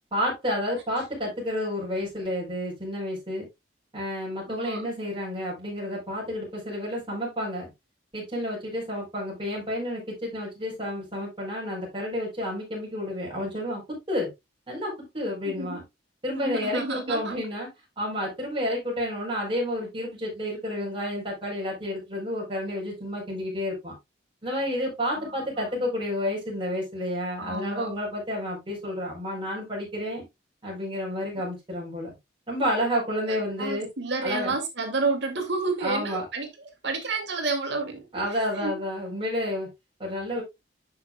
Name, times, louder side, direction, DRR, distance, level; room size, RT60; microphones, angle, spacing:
voice 1, 0.1-3.4 3.9-7.7 8.1-13.8 14.1-14.3 14.7-15.8 16.2-17.7 18.0-23.9 24.4-30.2 30.6-32.1 32.5-33.9 34.2-34.5 35.8-36.2 38.1-39.7 40.0-40.4, left 1 dB, 30° right, 4.6 m, -30 dB
voice 2, 4.5-4.8 15.4-15.8 16.3-17.4 25.1-25.4 27.4-27.9 33.2-36.5 36.8-38.2 38.5-38.8, right 3 dB, 65° right, 2.5 m, -30 dB
11.0 x 6.1 x 2.4 m
head